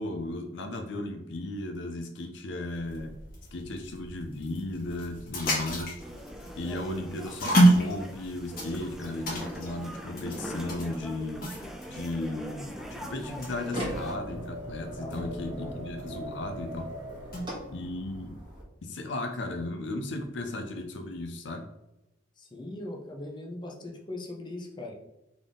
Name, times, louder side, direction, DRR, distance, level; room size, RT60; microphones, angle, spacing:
voice 1, 0.0-3.1 3.5-6.0 6.6-16.9 17.7-18.4 18.8-21.7, left 2 dB, 70° left, 5 dB, 0.5 m, -35 dB
sound 1, 2.7-17.6, right 1 dB, 50° left, 1.3 m, -31 dB
sound 2, 6.0-14.2, equal, ahead, 0.4 m, -42 dB
sound 3, 12.6-18.6, equal, 25° right, 1.3 m, -40 dB
voice 2, 15.0-15.8 22.4-24.9, left 1 dB, 25° left, 0 dB, 0.7 m, -40 dB
3.8 x 3.6 x 3.7 m, 0.91 s
head